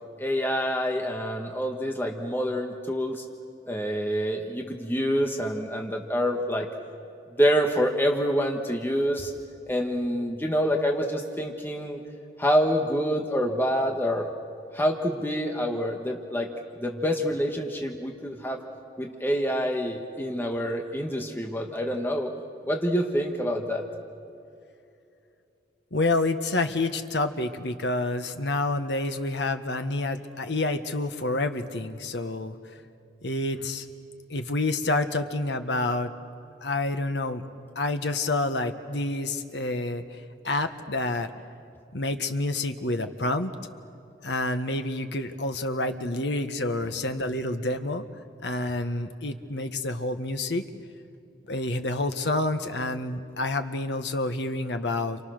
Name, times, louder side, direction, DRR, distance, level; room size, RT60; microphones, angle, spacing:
voice 1, 0.2-3.2 3.7-6.7 7.4-9.3 9.7-12.0 12.4-14.3 14.7-16.5 16.8-18.6 19.0-22.3 22.7-23.9, equal, 15° left, 2 dB, 1.6 m, -27 dB
voice 2, 25.9-32.5 33.2-33.9 34.3-36.1 36.6-37.4 37.7-41.3 41.9-43.5 44.2-48.0 48.4-50.6 51.5-55.2, left 2 dB, 80° left, 7 dB, 1.5 m, -28 dB
30.0 x 28.0 x 6.6 m, 2.6 s
head